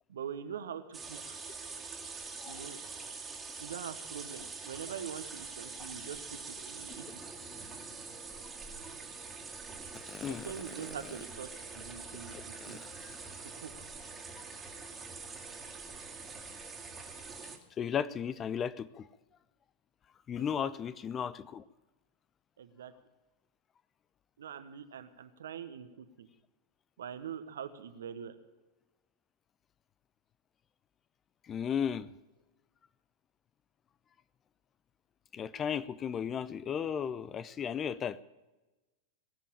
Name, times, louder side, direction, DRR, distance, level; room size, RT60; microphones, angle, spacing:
voice 1, 0.1-1.4 2.5-2.8 3.6-7.0 10.3-11.5 11.7-12.8 13.6-13.9 20.4-20.7 22.6-22.9 24.4-26.3 27.0-28.3, right 8 dB, 65° right, 11 dB, 1.1 m, -43 dB
sound 1, 0.9-17.6, right 4 dB, 15° right, 2.3 m, -45 dB
voice 2, 10.1-10.5 12.3-13.2 17.8-19.1 20.3-21.6 31.5-32.1 35.3-38.2, left 8 dB, 25° left, 17 dB, 0.5 m, -35 dB
18.0 x 7.6 x 8.8 m, 1.1 s
figure-of-eight pair, 90°, 0 cm